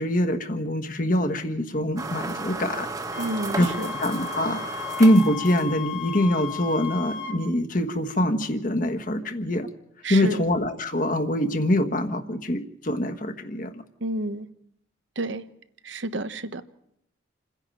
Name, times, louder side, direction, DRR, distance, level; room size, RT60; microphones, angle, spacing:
voice 1, 0.0-2.9 3.6-3.7 4.0-9.7 10.1-13.8, left 1 dB, 45° left, 1.4 m, -24 dB
sound 1, 2.0-6.0, right 2 dB, 20° right, 1.3 m, -34 dB
Wind instrument woodwind instrument, 3.1-7.4, left 8 dB, 60° left, 2.8 m, -35 dB
voice 2, 3.2-3.9 10.0-10.4 14.0-14.5 15.2-15.4 15.8-16.6, right 2 dB, 80° right, 1.1 m, -30 dB
28.0 x 10.5 x 9.1 m
head